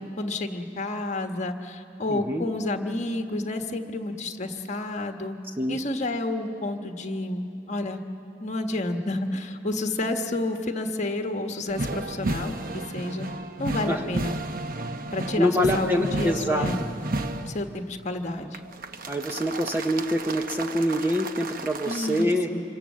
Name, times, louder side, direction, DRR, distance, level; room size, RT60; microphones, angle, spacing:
voice 1, 0.0-5.4 5.7-8.0 8.4-13.3 13.6-14.3 15.1-16.8 17.4-18.6 21.8-22.6, left 2 dB, 40° left, 4 dB, 1.4 m, -30 dB
voice 2, 2.1-2.4 5.6-5.8 13.9-14.0 15.4-16.7 19.1-22.5, equal, 10° right, 4 dB, 0.8 m, -25 dB
sound 1, 11.7-17.7 18.5-22.2, right 2 dB, 50° right, 0.9 m, -33 dB
26.5 x 25.0 x 7.5 m, 2.7 s
head